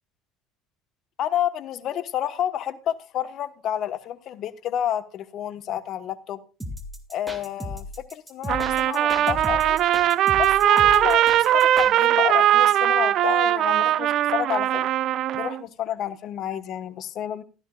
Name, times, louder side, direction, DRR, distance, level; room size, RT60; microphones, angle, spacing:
voice 1, 1.2-6.4 7.1-9.8 10.3-14.9 15.3-17.4, left 10 dB, 55° left, 1.2 m, -30 dB
sound 1, 6.6-11.9, left 1 dB, 5° right, 2.1 m, -35 dB
Trumpet, 8.5-15.6, right 12 dB, 55° right, 0.5 m, -20 dB
16.0 x 13.0 x 2.4 m
supercardioid pair, 115°, 0 cm